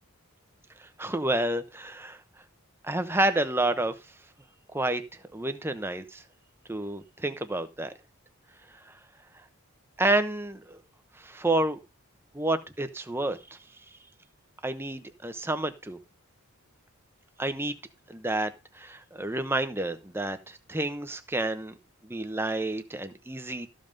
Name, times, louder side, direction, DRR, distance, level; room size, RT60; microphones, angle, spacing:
voice 1, 0.8-2.2 2.8-3.9 4.7-5.0 5.3-6.2 6.7-7.9 8.9-9.0 10.0-10.8 11.2-11.8 12.3-13.6 14.6-16.0 17.4-17.7 18.1-21.7 22.0-23.7, right 1 dB, 10° right, 0.9 m, -29 dB
13.5 x 5.6 x 5.2 m
head